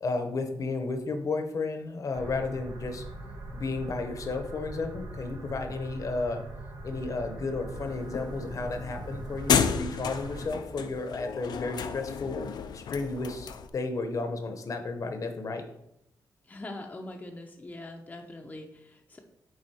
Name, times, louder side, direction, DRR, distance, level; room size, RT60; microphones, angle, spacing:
voice 1, 0.0-3.0 3.5-6.4 6.8-12.4 12.7-15.6, left 3 dB, 50° left, 6 dB, 0.8 m, -33 dB
sound 1, 2.1-10.5, right 2 dB, 75° right, 1.5 m, -41 dB
sound 2, 7.7-13.7, left 7 dB, 75° left, 0.4 m, -32 dB
voice 2, 16.4-19.2, left 2 dB, 20° left, 2 dB, 0.6 m, -42 dB
7.9 x 3.6 x 4.3 m, 0.79 s
wide cardioid pair, 125°, 7 cm